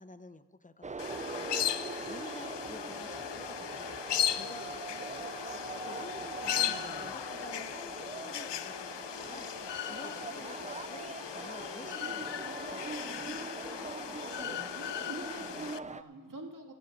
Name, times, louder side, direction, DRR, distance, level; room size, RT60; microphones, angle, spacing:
voice 1, 0.0-13.4, left 2 dB, 20° left, 12 dB, 0.8 m, -51 dB
sound 1, 0.8-16.0, right 4 dB, 20° right, 0.4 m, -42 dB
sound 2, 1.0-15.8, left 11 dB, 80° left, 0.5 m, -37 dB
Wind instrument woodwind instrument, 2.7-9.0, left 6 dB, 40° left, 3.2 m, -62 dB
voice 2, 5.9-6.8 14.4-16.7, right 2 dB, 50° right, 2 dB, 1.8 m, -48 dB
13.5 x 7.6 x 8.7 m, 1.4 s
cardioid pair, 45°, 42 cm